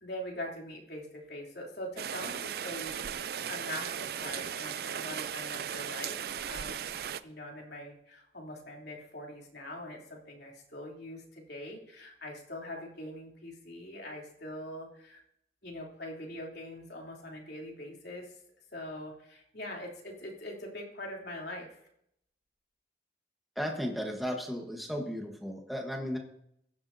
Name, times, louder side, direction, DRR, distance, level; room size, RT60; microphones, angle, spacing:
voice 1, 0.0-7.0 7.2-15.2 15.6-18.3 18.7-21.8, left 1 dB, 70° left, -2 dB, 3.0 m, -43 dB
Rain, 2.0-7.2, right 8 dB, 60° right, 0.4 m, -37 dB
voice 2, 23.6-26.2, equal, ahead, 1 dB, 1.2 m, -35 dB
15.5 x 11.5 x 2.7 m, 0.73 s
head